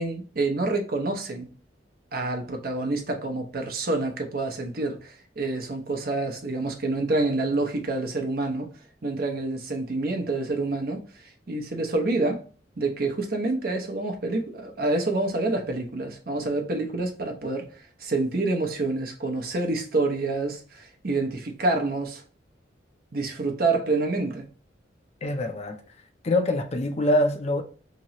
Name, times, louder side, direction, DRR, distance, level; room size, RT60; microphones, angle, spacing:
voice 1, 0.0-1.5 2.1-8.7 9.0-12.4 12.8-22.2 23.1-24.4, right 2 dB, 55° right, 0.7 m, -27 dB
voice 2, 25.2-25.8 26.2-27.6, left 1 dB, 35° left, 0.5 m, -24 dB
2.9 x 2.8 x 2.9 m
head